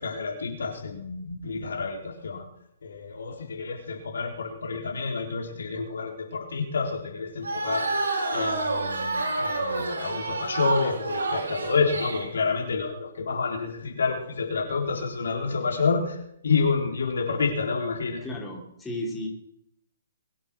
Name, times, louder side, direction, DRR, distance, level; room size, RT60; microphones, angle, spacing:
voice 1, 0.0-2.4 2.8-8.0 8.3-18.2, left 4 dB, 70° left, 1 dB, 4.1 m, -29 dB
sound 1, 7.4-12.3, right 3 dB, 75° right, 4.5 m, -28 dB
voice 2, 18.2-19.3, left 1 dB, 10° left, -2 dB, 3.8 m, -34 dB
22.5 x 8.7 x 6.2 m, 0.76 s
figure-of-eight pair, 130°, 0 cm